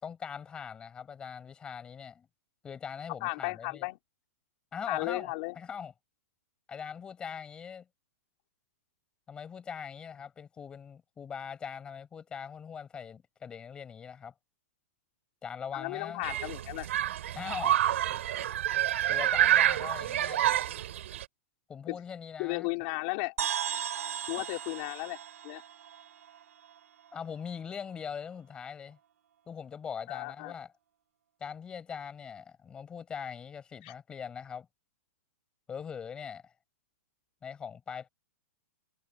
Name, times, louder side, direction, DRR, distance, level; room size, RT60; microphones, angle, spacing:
voice 1, 0.0-2.3 2.6-3.9 4.7-5.9 6.7-7.9 9.3-14.3 15.4-16.2 17.3-17.8 19.1-20.4 21.7-22.7 24.4-24.6 27.1-29.0 29.5-30.7 31.4-34.7 35.7-36.5 37.4-38.1, left 7 dB, 10° left, 5.6 m, -41 dB
voice 2, 3.2-4.0 4.9-5.5 15.7-16.9 21.9-22.0 22.4-23.3 24.3-25.2 25.4-25.6 30.1-30.5 33.8-33.9, left 26 dB, 35° left, 3.3 m, -34 dB
Human group actions, 16.2-21.2, right 12 dB, 60° right, 3.9 m, -28 dB
sound 1, 23.4-27.1, right 9 dB, 75° right, 8.0 m, -37 dB
hypercardioid pair, 170°, 8 cm